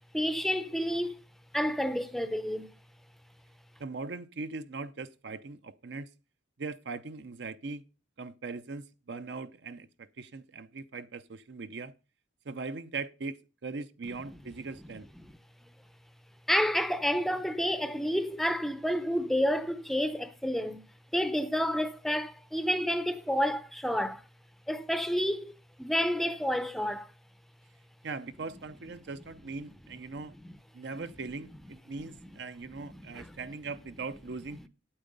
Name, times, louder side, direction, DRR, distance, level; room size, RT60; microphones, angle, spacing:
voice 1, 0.1-1.2 1.5-2.7 16.5-20.8 21.1-24.2 24.7-25.5 25.8-27.1 30.4-30.6 32.0-32.1 32.8-33.4, equal, ahead, 0.5 m, -30 dB
voice 2, 3.8-6.1 6.6-7.8 8.2-11.9 12.4-15.1 28.0-30.3 30.7-34.7, right 4 dB, 60° right, 0.6 m, -40 dB
8.8 x 8.8 x 5.3 m
head